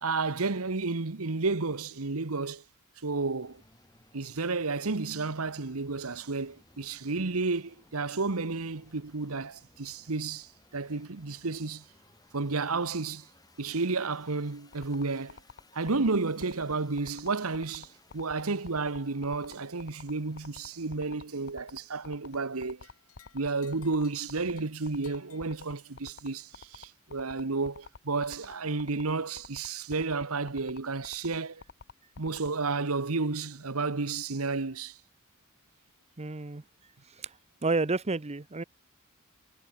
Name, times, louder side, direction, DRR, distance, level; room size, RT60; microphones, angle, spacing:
voice 1, 0.0-2.6 3.0-3.6 4.1-11.8 12.3-13.3 13.6-15.4 15.7-17.9 18.1-22.9 23.3-31.6 32.2-35.0, right 3 dB, 85° right, 1.3 m, -31 dB
sound 1, 3.4-21.7, left 2 dB, 20° left, 6.6 m, -63 dB
sound 2, 14.7-32.5, left 4 dB, 55° left, 1.2 m, -48 dB
sound 3, 22.8-26.2, left 10 dB, 85° left, 6.6 m, -61 dB
voice 2, 36.2-36.6 37.1-37.4 37.6-38.6, right 3 dB, 30° right, 0.8 m, -30 dB
head